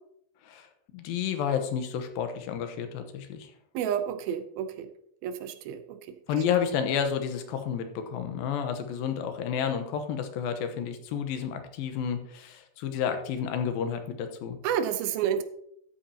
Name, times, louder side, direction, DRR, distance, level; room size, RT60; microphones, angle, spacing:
voice 1, 0.9-3.5 6.3-14.6, left 7 dB, 85° left, 7 dB, 2.8 m, -30 dB
voice 2, 3.7-4.9 5.2-6.0 14.6-15.4, right 9 dB, 90° right, 9 dB, 2.7 m, -30 dB
13.0 x 8.6 x 2.9 m, 0.70 s
omnidirectional pair, 4.2 m